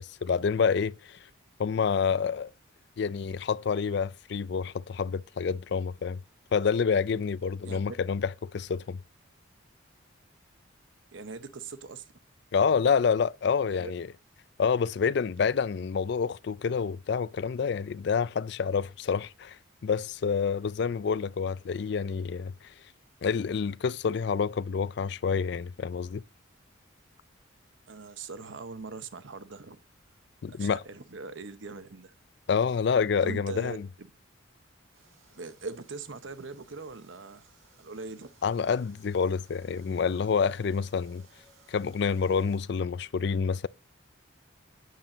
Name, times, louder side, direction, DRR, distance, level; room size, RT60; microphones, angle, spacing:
voice 1, 0.3-1.2 1.6-2.5 3.0-6.2 6.5-9.0 12.5-14.1 14.6-22.7 23.2-26.2 30.4-30.8 32.5-33.9 38.4-41.3 41.7-43.7, left 6 dB, 55° left, 0.3 m, -28 dB
voice 2, 11.1-12.1 13.7-13.9 27.9-29.8 30.5-32.1 33.2-34.1 35.3-37.5 37.8-38.3, right 4 dB, 65° right, 0.9 m, -41 dB
sound 1, 34.9-42.6, right 3 dB, 85° right, 4.4 m, -62 dB
9.4 x 7.5 x 3.9 m
head